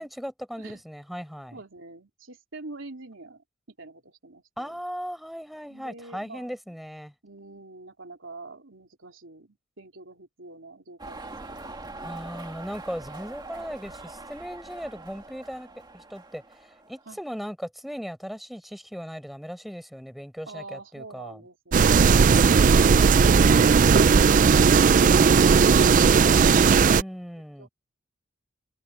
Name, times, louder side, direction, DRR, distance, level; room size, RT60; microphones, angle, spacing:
voice 1, 0.0-1.6 4.6-7.1 12.0-15.7 15.9-21.4 26.5-27.7, equal, ahead, 5.3 m, -37 dB
voice 2, 1.5-3.4 3.8-4.8 5.7-6.6 7.2-11.8 17.0-17.2 20.5-26.7 27.6-27.7, right 3 dB, 70° right, 3.4 m, -46 dB
sound 1, 11.0-17.2, right 2 dB, 20° right, 1.9 m, -43 dB
sound 2, 21.7-27.0, right 5 dB, 40° right, 0.4 m, -17 dB
head